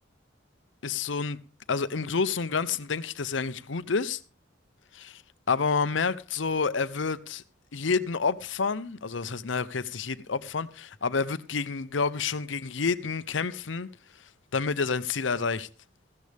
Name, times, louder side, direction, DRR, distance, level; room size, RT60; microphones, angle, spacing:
voice 1, 0.8-1.4 1.7-4.2 4.9-5.2 5.5-7.4 7.7-13.9 14.5-15.7, left 5 dB, 80° left, 0.8 m, -29 dB
15.0 x 13.0 x 3.5 m
head